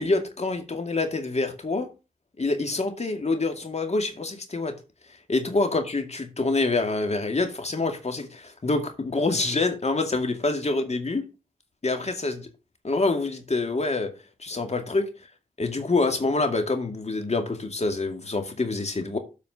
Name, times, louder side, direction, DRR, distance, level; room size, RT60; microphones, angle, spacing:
voice 1, 0.0-1.9 2.4-4.8 5.3-11.2 11.8-12.5 12.8-14.1 14.4-15.1 15.6-19.2, left 3 dB, 50° left, 2.3 m, -26 dB
8.2 x 4.9 x 6.9 m
cardioid pair, 50°, 14 cm